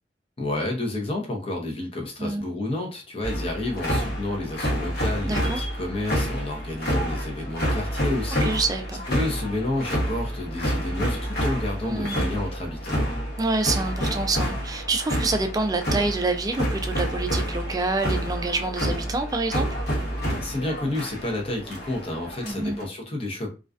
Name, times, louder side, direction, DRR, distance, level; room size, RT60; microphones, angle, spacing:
voice 1, 0.4-8.6 9.1-13.0 20.3-23.5, left 2 dB, 35° left, 0.7 m, -30 dB
sound 1, 3.2-22.9, equal, 65° left, 0.9 m, -28 dB
voice 2, 5.3-5.6 8.4-9.0 11.8-12.4 13.4-19.7 22.4-22.8, right 3 dB, 20° right, 0.3 m, -27 dB
2.4 x 2.2 x 2.4 m
head